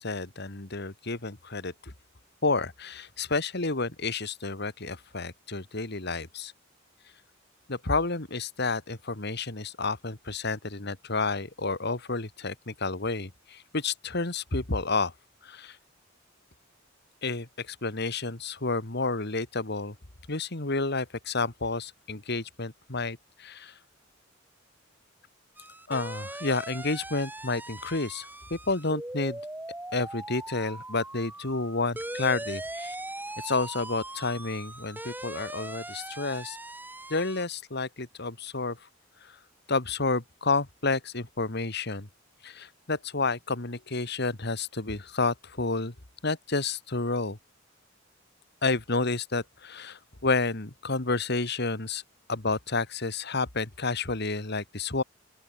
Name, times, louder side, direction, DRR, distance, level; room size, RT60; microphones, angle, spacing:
voice 1, 0.0-1.9 2.4-6.5 7.7-15.1 15.4-15.8 17.2-20.0 20.3-23.8 25.9-29.4 29.9-33.0 33.4-36.6 37.1-38.9 39.2-39.4 39.7-42.1 42.4-45.9 46.2-47.4 48.6-52.0 52.3-55.0, left 3 dB, 55° left, 2.3 m, -30 dB
sound 1, 25.6-37.5, right 1 dB, 10° right, 3.3 m, -40 dB
open air
head